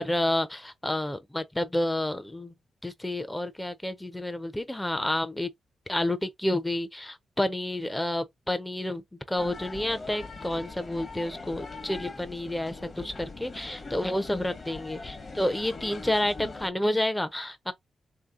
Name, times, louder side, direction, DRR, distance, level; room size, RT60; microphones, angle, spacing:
voice 1, 0.0-2.5 2.8-5.5 5.9-9.0 9.3-17.7, left 1 dB, 10° left, 0.5 m, -30 dB
sound 1, 9.4-16.7, left 3 dB, 40° left, 0.9 m, -42 dB
3.2 x 2.8 x 3.6 m
cardioid pair, 80°, 0 cm